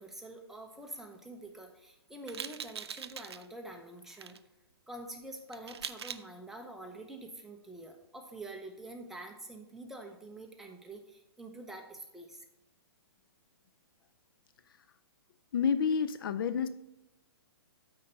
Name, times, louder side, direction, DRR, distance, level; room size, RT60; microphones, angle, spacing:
voice 1, 0.0-4.4 4.9-12.4, right 2 dB, 5° right, 2 dB, 0.7 m, -46 dB
sound 1, 2.3-3.5 4.1-4.4 5.5-6.2, right 8 dB, 85° right, 0.5 m, -42 dB
voice 2, 15.5-16.7, left 6 dB, 60° left, 13 dB, 0.5 m, -29 dB
8.6 x 4.4 x 5.2 m, 0.87 s
hypercardioid pair, 150°, 13 cm